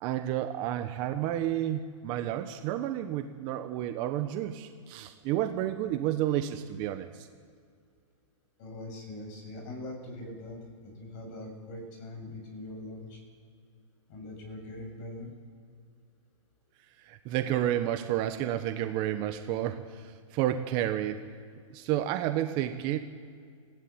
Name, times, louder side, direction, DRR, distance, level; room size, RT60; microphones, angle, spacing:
voice 1, 0.0-7.3 17.0-21.2 21.7-23.0, right 12 dB, 30° right, 8 dB, 1.1 m, -31 dB
voice 2, 8.6-13.2 14.1-15.3, left 1 dB, 35° left, 3 dB, 7.0 m, -42 dB
18.5 x 15.5 x 8.9 m, 2.2 s
hypercardioid pair, 155°, 17 cm